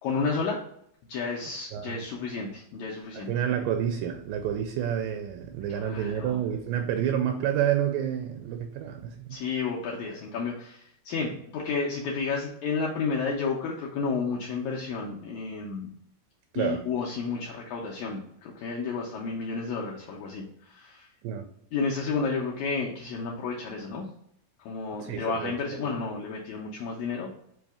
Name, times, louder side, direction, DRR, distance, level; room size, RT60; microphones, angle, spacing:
voice 1, 0.0-0.6 1.1-3.3 5.7-6.4 9.3-15.9 16.5-21.1 21.7-24.1 24.6-27.3, left 4 dB, 85° left, -2 dB, 1.7 m, -31 dB
voice 2, 1.7-2.1 3.1-9.4 16.5-16.8 21.2-21.5 25.0-25.8, right 9 dB, 80° right, 5 dB, 2.0 m, -29 dB
5.4 x 2.8 x 3.4 m, 0.71 s
omnidirectional pair, 4.0 m